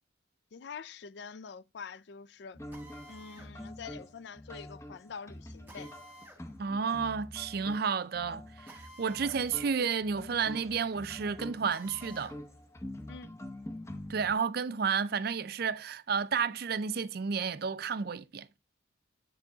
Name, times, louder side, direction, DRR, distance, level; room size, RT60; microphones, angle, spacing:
voice 1, 0.5-2.6 3.1-5.9 13.1-13.3, left 6 dB, 55° left, 0.4 m, -46 dB
sound 1, 2.5-14.4, left 1 dB, 15° left, 0.8 m, -46 dB
Drill, 2.7-3.5 5.7-6.4 8.7-9.4 9.8-9.9 11.7-12.4, right 1 dB, 10° right, 1.7 m, -52 dB
voice 2, 6.6-12.3 14.1-18.5, right 6 dB, 50° right, 0.4 m, -31 dB
8.1 x 4.5 x 3.8 m
head